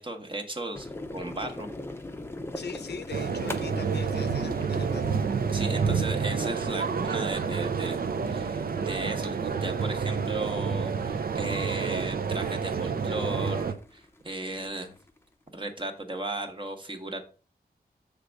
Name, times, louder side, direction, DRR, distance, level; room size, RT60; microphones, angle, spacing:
voice 1, 0.0-1.7 5.5-8.0 8.3-14.9 15.5-17.2, right 1 dB, 30° right, 4 dB, 1.0 m, -36 dB
sound 1, 0.7-15.2, left 2 dB, 15° left, 0.6 m, -42 dB
voice 2, 2.5-5.2, left 6 dB, 80° left, 9 dB, 0.6 m, -41 dB
sound 2, 3.1-13.7, right 5 dB, 60° right, 0.6 m, -29 dB
6.6 x 3.4 x 5.1 m, 0.37 s
wide cardioid pair, 120°, 17 cm